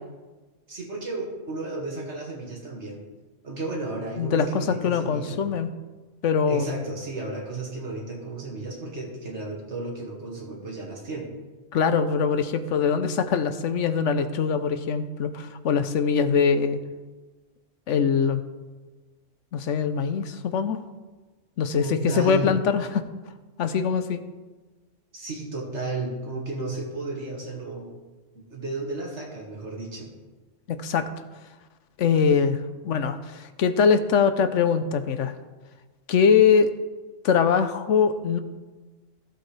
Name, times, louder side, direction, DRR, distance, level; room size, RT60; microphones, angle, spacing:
voice 1, 0.7-3.0 3.4-5.6 6.5-11.3 21.8-22.6 25.1-27.9 28.4-30.1, right 2 dB, 65° right, -1 dB, 2.2 m, -33 dB
voice 2, 4.2-5.7 6.2-6.7 11.7-16.8 17.9-18.4 19.5-20.8 21.6-23.0 23.6-24.2 30.7-31.1 32.0-35.3 36.1-36.7 37.2-38.4, left 6 dB, 75° left, 10 dB, 1.0 m, -22 dB
14.5 x 7.9 x 3.3 m, 1.3 s
omnidirectional pair, 1.3 m